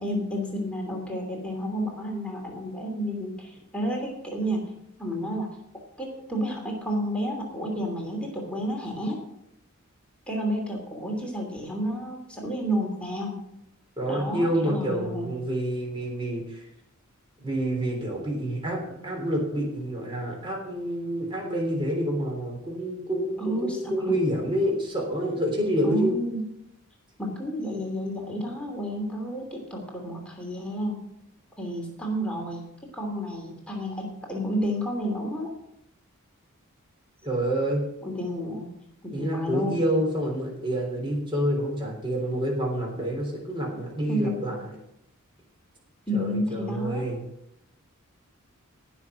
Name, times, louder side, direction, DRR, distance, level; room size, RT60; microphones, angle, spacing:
voice 1, 0.0-4.6 5.0-5.5 6.0-9.2 10.3-13.4 14.1-15.3 23.4-24.1 25.8-26.4 27.2-31.0 31.6-32.7 32.9-35.5 38.0-38.7 39.0-39.8 44.1-44.5 46.1-47.1, equal, 5° left, -1 dB, 2.8 m, -31 dB
voice 2, 14.0-16.6 17.4-26.1 37.2-37.8 39.1-44.7 46.1-47.2, equal, 25° right, -1 dB, 3.5 m, -28 dB
18.0 x 6.1 x 6.3 m, 0.80 s
head